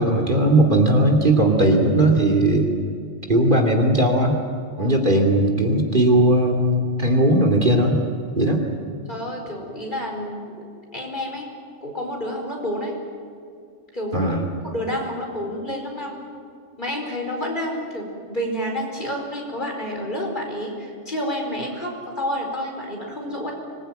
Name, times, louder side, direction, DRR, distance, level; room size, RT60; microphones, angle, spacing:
voice 1, 0.0-2.7 3.3-4.4 4.8-8.0 8.4-8.6 14.1-14.4, right 1 dB, 45° right, 1 dB, 2.9 m, -18 dB
voice 2, 9.1-10.7 10.9-11.5 11.8-13.0 13.9-14.2 14.6-16.2 16.8-23.5, equal, 40° left, 0 dB, 4.8 m, -29 dB
25.5 x 20.5 x 9.1 m, 2.3 s
omnidirectional pair, 1.2 m